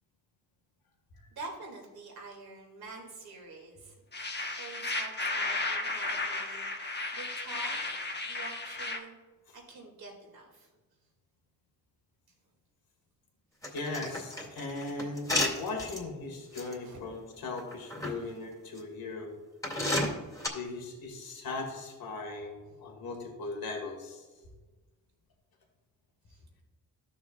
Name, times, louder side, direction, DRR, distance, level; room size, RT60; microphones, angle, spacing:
voice 1, 1.3-3.9 4.6-7.8 8.2-9.2 9.5-10.7 16.5-17.0 18.0-18.3 26.3-26.4, right 3 dB, 85° right, 0 dB, 2.3 m, -47 dB
sound 1, 4.1-9.0, left 2 dB, 30° left, 1.1 m, -34 dB
sound 2, 13.6-16.0 16.5-16.7 17.6-18.1 18.8-18.9 19.6-20.5, left 1 dB, 10° left, 2.2 m, -31 dB
voice 2, 13.7-19.4 20.5-24.3, left 3 dB, 75° left, 2 dB, 1.8 m, -38 dB
13.5 x 6.4 x 2.3 m, 1.3 s
cardioid pair, 85°, 36 cm